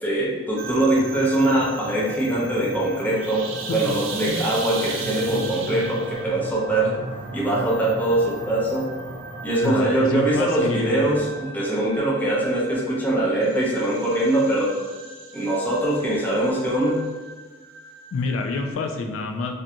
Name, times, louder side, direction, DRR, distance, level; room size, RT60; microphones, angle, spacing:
voice 1, 0.0-6.9 7.3-8.9 9.4-14.8 15.3-17.0, right 1 dB, 10° left, -5 dB, 0.5 m, -22 dB
sound 1, 0.6-18.7, right 3 dB, 75° right, 0.3 m, -36 dB
voice 2, 9.6-11.0 18.1-19.5, left 3 dB, 85° left, 4 dB, 0.3 m, -27 dB
2.5 x 2.2 x 2.7 m, 1.3 s
head